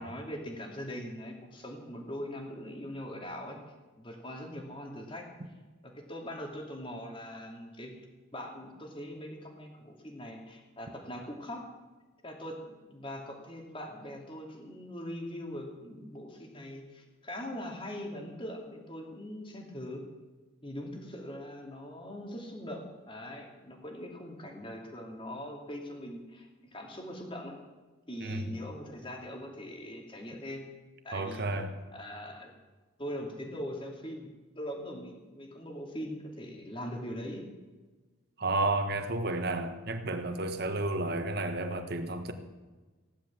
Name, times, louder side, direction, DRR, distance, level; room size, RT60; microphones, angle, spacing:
voice 1, 0.0-3.6 4.0-5.3 5.8-8.1 8.3-11.7 12.2-20.0 20.6-27.5 28.1-30.6 31.0-31.5 31.9-32.5 33.0-37.4, equal, 25° left, 2.8 m, -41 dB
voice 2, 28.2-28.5 31.1-31.7 38.4-42.3, right 2 dB, 50° right, 1.6 m, -31 dB
16.5 x 11.5 x 7.5 m
head